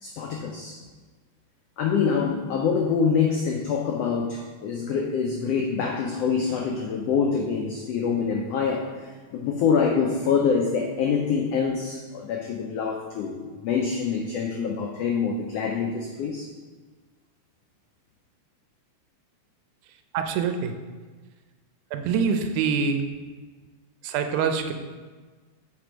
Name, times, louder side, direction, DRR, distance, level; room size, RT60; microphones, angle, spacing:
voice 1, 0.0-0.8 1.8-8.9 9.3-16.5, left 6 dB, 90° left, 1 dB, 1.4 m, -25 dB
voice 2, 20.1-20.7 21.9-23.0 24.0-24.7, right 6 dB, 85° right, 7 dB, 2.1 m, -25 dB
7.6 x 3.4 x 5.0 m, 1.4 s
omnidirectional pair, 3.5 m